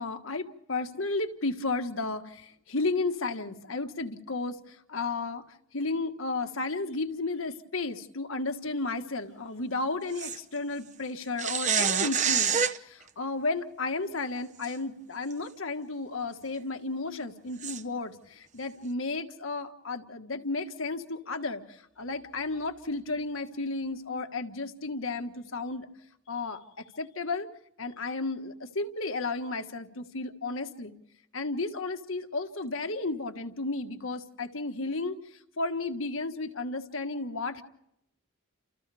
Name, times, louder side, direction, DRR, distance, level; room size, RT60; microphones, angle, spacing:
voice 1, 0.0-5.4 5.7-12.6 12.8-25.9 26.3-26.6 27.0-27.5 27.8-30.9 31.3-35.2 35.6-37.6, left 3 dB, 75° left, 6 dB, 1.6 m, -33 dB
sound 1, 10.2-10.4 11.4-12.8 14.6-14.7 15.3-15.4 17.6-17.8, right 7 dB, 35° right, 0.9 m, -26 dB
30.0 x 28.5 x 3.5 m, 0.79 s
head